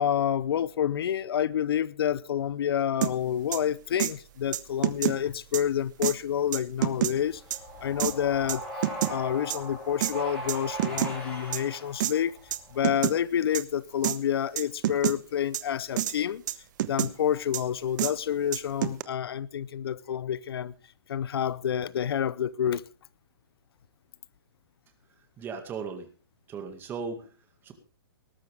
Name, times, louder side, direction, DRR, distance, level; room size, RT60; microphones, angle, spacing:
voice 1, 0.0-7.4 7.8-8.6 9.1-12.3 12.7-16.4 16.9-20.7 21.1-22.8, left 9 dB, 75° left, 0.7 m, -28 dB
sound 1, 3.0-3.1 3.5-3.6 4.0-4.1 4.5-5.2 5.5-5.6 6.0-6.2 6.5-7.1 7.5-7.6 8.0-8.1 8.5-9.1 9.5-9.6 10.0-10.1 10.5-11.1 11.5-11.6 12.0-12.1 12.5-12.6 12.8-13.2 13.5-13.6 14.0-14.2 14.6-15.2 15.5-15.6 16.0-16.2 16.5-17.1 17.5-17.6 18.0-18.1 18.5-19.0, right 13 dB, 50° right, 1.1 m, -27 dB
sound 2, 6.8-12.9, right 1 dB, 10° left, 7.5 m, -39 dB
voice 2, 25.4-26.1 26.5-27.3 27.6-27.7, right 5 dB, 15° right, 2.1 m, -36 dB
19.0 x 12.0 x 3.6 m
hypercardioid pair, 160°, 13 cm